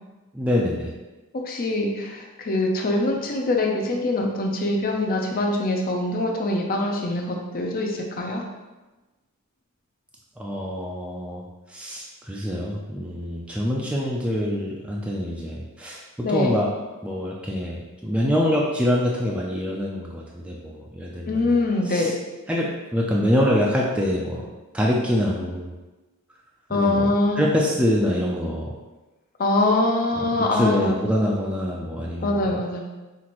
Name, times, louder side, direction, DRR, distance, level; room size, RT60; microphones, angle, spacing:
voice 1, 0.3-0.9 10.4-11.4 11.7-16.7 17.0-21.5 21.8-22.1 22.5-24.5 24.7-25.7 26.7-27.1 27.4-28.7 30.2-32.5, equal, 5° right, -3 dB, 0.4 m, -25 dB
voice 2, 1.5-8.4 16.2-16.6 21.3-22.1 26.7-27.4 29.4-31.0 32.2-32.8, left 2 dB, 40° left, 1 dB, 0.6 m, -23 dB
5.7 x 2.5 x 3.0 m, 1.1 s
head